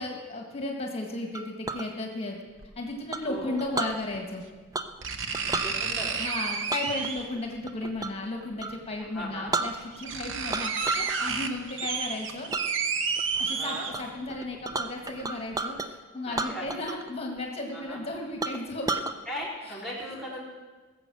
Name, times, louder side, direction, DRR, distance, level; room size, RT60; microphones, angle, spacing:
voice 1, 0.0-2.4 2.8-4.4 6.2-12.5 13.4-18.8, left 2 dB, 30° left, 1 dB, 1.7 m, -34 dB
Chink clink, 1.3-1.9 3.1-4.0 4.7-5.0 5.3-5.7 6.7-8.2 8.6-8.8 9.2-9.3 9.5-10.1 10.5-11.1 11.5-11.9 12.5-12.7 13.2-13.5 13.9-14.0 14.3-15.9 16.3-17.1 17.4-17.5 17.9-18.0 18.4-19.1, right 3 dB, 20° right, 0.6 m, -32 dB
sound 1, 2.6-2.7 4.1-4.2 5.0-7.4 8.7-8.8 9.5-9.6 9.8-14.3 14.7-14.8, right 5 dB, 65° right, 1.0 m, -31 dB
voice 2, 3.2-3.6 5.6-6.2 9.0-9.5 13.5-13.9 16.3-16.8 17.7-18.0 19.3-20.4, equal, ahead, -3 dB, 4.1 m, -38 dB
20.0 x 7.7 x 6.3 m, 1.3 s
head